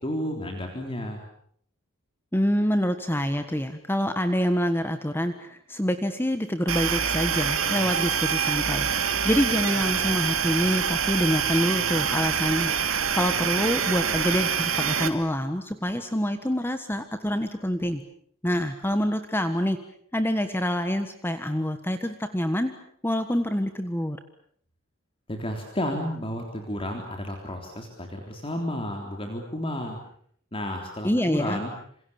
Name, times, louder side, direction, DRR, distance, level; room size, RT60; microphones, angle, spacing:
voice 1, 0.0-1.2 25.3-30.0 30.5-31.7, left 1 dB, 25° left, 3 dB, 3.7 m, -32 dB
voice 2, 2.3-18.0 18.4-19.8 20.1-22.7 23.0-24.2 31.0-31.6, equal, 10° left, 9 dB, 1.4 m, -26 dB
sound 1, 6.7-15.1, right 7 dB, 70° right, 2.9 m, -25 dB
27.5 x 27.5 x 7.2 m, 0.64 s
head